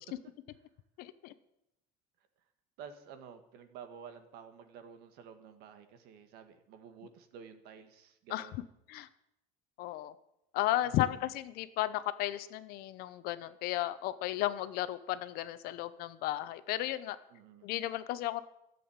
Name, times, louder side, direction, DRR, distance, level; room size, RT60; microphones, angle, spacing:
voice 1, 1.0-1.3 8.3-8.5 8.9-9.1 9.8-10.1 10.5-17.2 17.6-18.4, left 14 dB, 60° left, 13 dB, 0.9 m, -34 dB
voice 2, 2.8-8.6 10.8-11.0 17.3-17.7, right 7 dB, 65° right, 8 dB, 1.8 m, -51 dB
13.5 x 7.8 x 8.8 m, 0.82 s
cardioid pair, 170°, 18 cm